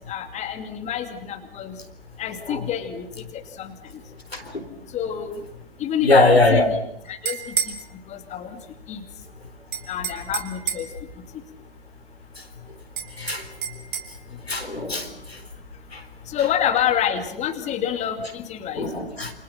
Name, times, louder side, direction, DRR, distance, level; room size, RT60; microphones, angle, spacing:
voice 1, 0.1-1.8 2.2-3.1 3.3-3.7 4.9-5.4 5.8-6.8 7.1-7.7 8.1-8.6 8.9-9.0 9.9-10.9 16.3-18.9, left 9 dB, 25° left, 7 dB, 2.6 m, -27 dB
voice 2, 4.3-4.6 6.0-6.7 13.2-13.4 14.5-15.1 15.9-16.0 18.8-19.3, left 2 dB, 90° left, 9 dB, 4.1 m, -20 dB
sound 1, 7.1-7.8 9.7-11.0 13.0-14.1, right 8 dB, 55° right, 4.2 m, -29 dB
28.5 x 26.5 x 5.9 m, 0.73 s
figure-of-eight pair, 115°, 30 cm